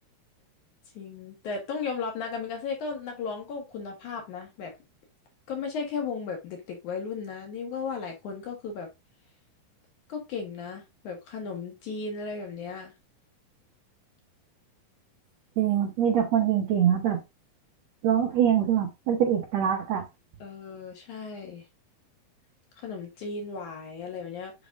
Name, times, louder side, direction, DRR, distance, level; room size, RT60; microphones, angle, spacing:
voice 1, 0.9-4.7 5.5-8.9 10.1-12.9 20.4-21.6 22.8-24.5, left 5 dB, 60° left, 2.4 m, -35 dB
voice 2, 15.6-17.2 18.0-20.0, right 9 dB, 85° right, 1.5 m, -24 dB
7.4 x 5.2 x 2.5 m
omnidirectional pair, 4.5 m